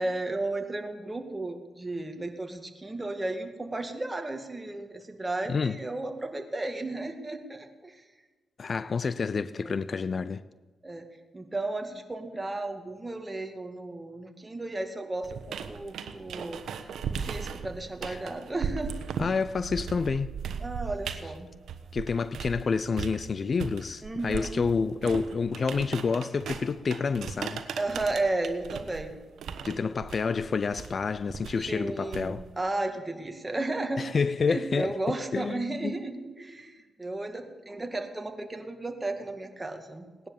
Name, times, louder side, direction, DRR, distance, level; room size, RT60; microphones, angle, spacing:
voice 1, 0.0-8.0 9.6-9.9 10.8-11.1 11.3-18.9 20.6-21.5 24.0-24.6 27.8-29.2 29.6-29.8 31.6-34.2 34.5-40.3, right 2 dB, 20° right, 2.2 m, -34 dB
voice 2, 8.6-10.4 18.0-18.2 19.2-20.3 21.9-27.6 29.6-32.4 34.0-35.9, left 5 dB, 50° left, 0.5 m, -29 dB
sound 1, 15.2-22.6 23.0-32.6, right 7 dB, 80° right, 1.2 m, -37 dB
18.5 x 10.5 x 7.1 m
cardioid pair, 70°, 0 cm